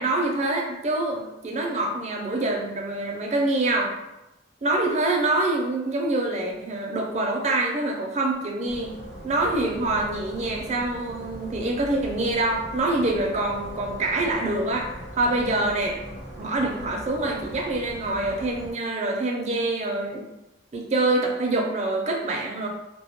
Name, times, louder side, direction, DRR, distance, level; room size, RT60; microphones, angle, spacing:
voice 1, 0.0-4.0 4.6-8.9 9.2-16.0 16.4-20.2 20.7-22.7, right 2 dB, 40° right, 1 dB, 0.4 m, -25 dB
sound 1, 8.7-18.7, equal, 75° left, 0.7 m, -40 dB
2.1 x 2.1 x 2.8 m, 0.94 s
head